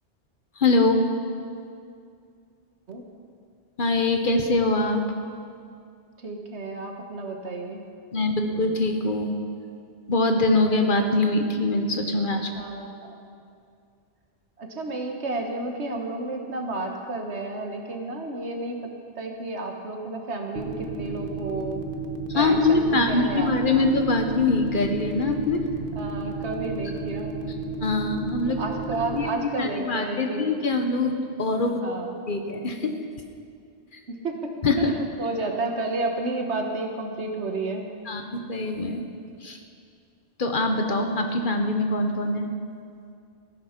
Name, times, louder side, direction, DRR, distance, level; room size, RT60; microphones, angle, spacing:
voice 1, 0.6-1.0 3.8-5.0 8.1-9.3 10.1-12.5 22.3-25.9 27.8-28.6 29.1-29.3 29.6-31.9 32.3-32.9 34.6-34.9 38.1-39.0 39.4-39.6 40.4-42.5, left 2 dB, 50° left, 5 dB, 1.1 m, -23 dB
voice 2, 6.2-7.9 12.5-13.3 14.6-18.9 19.1-21.8 22.3-24.0 25.9-27.6 28.6-30.4 31.7-32.2 34.1-34.5 34.8-37.9, right 2 dB, 75° right, 2 dB, 1.6 m, -31 dB
sound 1, 20.6-29.3, right 5 dB, 55° right, 1.2 m, -32 dB
15.5 x 10.0 x 5.9 m, 2.4 s
omnidirectional pair, 1.1 m